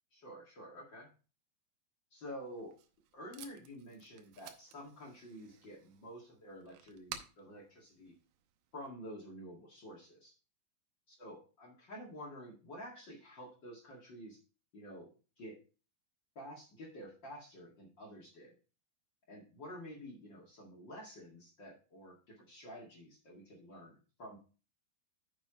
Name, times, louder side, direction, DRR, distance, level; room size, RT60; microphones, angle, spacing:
voice 1, 0.1-1.1 2.1-2.7 3.1-8.1 8.7-10.3 11.1-14.4 14.7-15.1 15.4-15.6 16.3-18.5 19.3-24.4, equal, 40° left, -2 dB, 1.7 m, -50 dB
Packing tape duct tape, 2.4-8.9, right 9 dB, 90° right, 3.2 m, -54 dB
7.3 x 6.9 x 4.9 m, 0.35 s
omnidirectional pair, 5.0 m